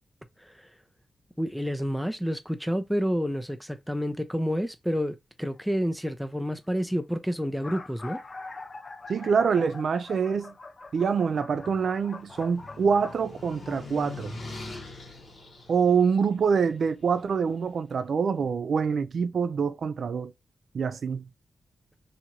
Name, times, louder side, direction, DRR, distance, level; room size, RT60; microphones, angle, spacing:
voice 1, 1.4-8.2, equal, ahead, 0.5 m, -29 dB
sound 1, 5.5-5.8 6.7-6.8 7.0-7.1 7.4-13.8, left 3 dB, 45° left, 0.6 m, -44 dB
voice 2, 9.1-10.5 10.9-14.3 15.7-20.3 20.7-21.3, right 6 dB, 70° right, 0.4 m, -25 dB
sound 2, 11.1-17.3, left 3 dB, 70° left, 1.3 m, -43 dB
2.8 x 2.5 x 2.9 m
cardioid pair, 70°, 0 cm